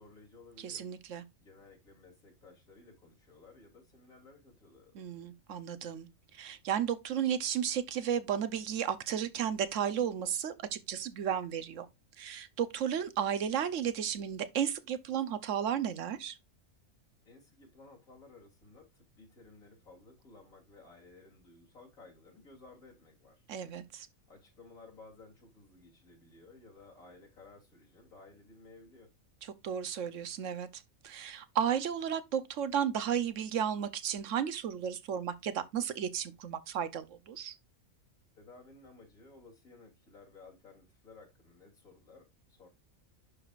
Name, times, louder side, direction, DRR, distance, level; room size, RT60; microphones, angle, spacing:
voice 1, 0.0-0.9 1.4-5.0 17.3-23.4 24.3-29.1 38.4-42.7, left 3 dB, 75° left, 3.4 m, -56 dB
voice 2, 0.6-1.2 4.9-11.9 12.2-16.4 23.5-24.1 29.6-37.6, right 8 dB, 65° right, 1.0 m, -34 dB
11.0 x 4.8 x 2.4 m
omnidirectional pair, 1.5 m